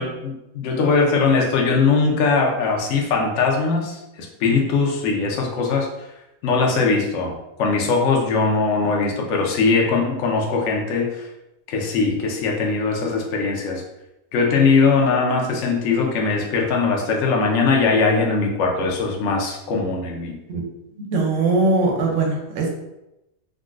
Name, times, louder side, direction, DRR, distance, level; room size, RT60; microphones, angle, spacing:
voice 1, 0.0-5.9 6.4-11.3 11.7-13.8 14.3-20.4, left 4 dB, 70° left, 0 dB, 0.7 m, -20 dB
voice 2, 21.0-22.7, right 3 dB, 65° right, 1 dB, 0.8 m, -21 dB
3.7 x 2.2 x 2.4 m, 0.92 s
omnidirectional pair, 1.8 m